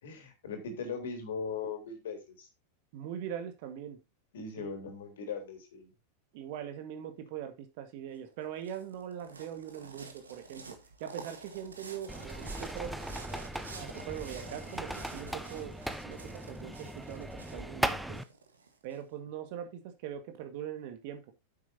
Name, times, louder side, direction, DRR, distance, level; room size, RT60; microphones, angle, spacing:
voice 1, 0.0-2.5 4.3-5.9, left 5 dB, 60° left, 3.4 m, -39 dB
voice 2, 2.9-4.0 4.6-4.7 6.3-13.0 13.5-15.8 16.0-18.2 18.8-21.3, right 9 dB, 50° right, 1.8 m, -42 dB
sound 1, 8.1-19.0, right 4 dB, 75° right, 1.9 m, -49 dB
sound 2, 12.1-18.2, right 1 dB, 5° right, 0.8 m, -38 dB
9.6 x 8.1 x 2.8 m
figure-of-eight pair, 90°, 0 cm